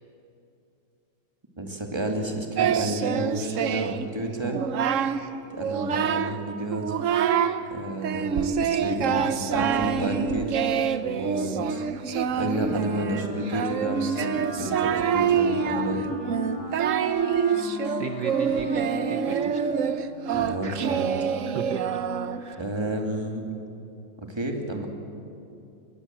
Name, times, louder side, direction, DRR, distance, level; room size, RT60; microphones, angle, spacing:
voice 1, 1.6-4.6 5.5-6.9 7.7-10.5 11.1-11.8 12.3-16.1 17.8-18.0 20.3-21.1 22.6-23.5 24.3-24.9, right 1 dB, 10° right, 2 dB, 2.1 m, -31 dB
Singing, 2.6-4.1 4.4-5.2 5.6-6.4 6.7-7.6 8.0-22.5, right 7 dB, 75° right, 0.7 m, -26 dB
Wind instrument woodwind instrument, 12.0-20.1, left 1 dB, 45° right, 8.1 m, -37 dB
voice 2, 18.0-19.6 20.6-21.0 21.5-22.0 22.4-22.6, right 6 dB, 60° right, 7 dB, 1.3 m, -36 dB
23.0 x 20.5 x 7.5 m, 2.7 s
omnidirectional pair, 2.3 m